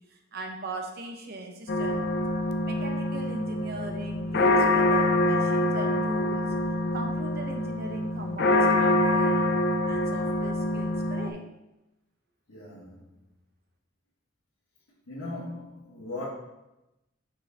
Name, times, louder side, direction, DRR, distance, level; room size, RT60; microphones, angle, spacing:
voice 1, 0.0-2.1 2.6-6.5 6.9-9.5 9.8-11.4, right 2 dB, 50° right, 3 dB, 0.8 m, -39 dB
sound 1, 1.7-11.3, left 1 dB, 50° left, 0.4 m, -25 dB
voice 2, 12.5-13.1 15.1-16.2, left 2 dB, 90° left, -8 dB, 1.6 m, -38 dB
6.2 x 4.7 x 3.5 m, 0.95 s
head